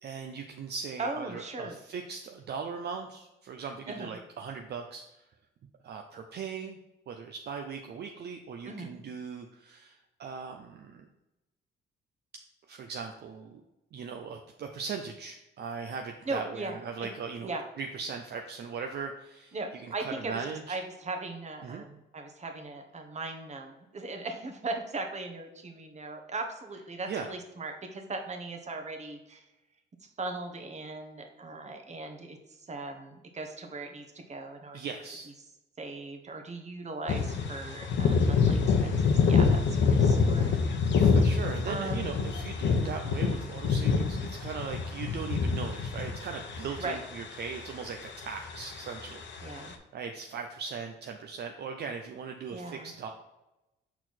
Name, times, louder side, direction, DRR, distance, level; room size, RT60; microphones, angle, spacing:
voice 1, 0.0-5.2 5.8-6.8 7.1-11.1 12.7-13.6 13.9-20.8 21.6-21.8 27.1-27.3 34.7-35.3 40.4-40.6 40.9-53.1, right 5 dB, 55° right, 4 dB, 0.6 m, -39 dB
voice 2, 1.0-1.7 3.9-4.2 8.6-9.0 16.3-16.8 17.4-17.6 19.5-29.4 30.2-34.9 35.8-40.6 41.6-42.2 46.8-47.0 49.4-49.8 52.5-52.9, right 3 dB, 35° right, 4 dB, 1.2 m, -38 dB
sound 1, 37.1-47.7 48.0-49.7, left 5 dB, 70° left, 0.9 m, -26 dB
6.2 x 4.4 x 4.2 m, 0.95 s
cardioid pair, 90°, 20 cm